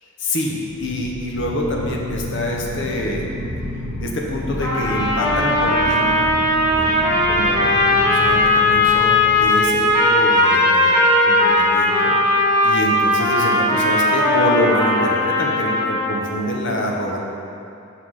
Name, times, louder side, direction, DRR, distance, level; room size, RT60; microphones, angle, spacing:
voice 1, 0.3-3.3 4.0-6.2 6.7-6.9 7.3-12.1 12.6-17.2, equal, 55° left, -1 dB, 0.8 m, -26 dB
sound 1, 0.6-10.4, right 1 dB, 20° right, 0.6 m, -32 dB
Singing, 1.2-10.1, left 4 dB, 80° left, 0.4 m, -37 dB
sound 2, 4.6-16.3, left 1 dB, 15° left, 1.2 m, -18 dB
5.8 x 5.8 x 4.8 m, 2.7 s
head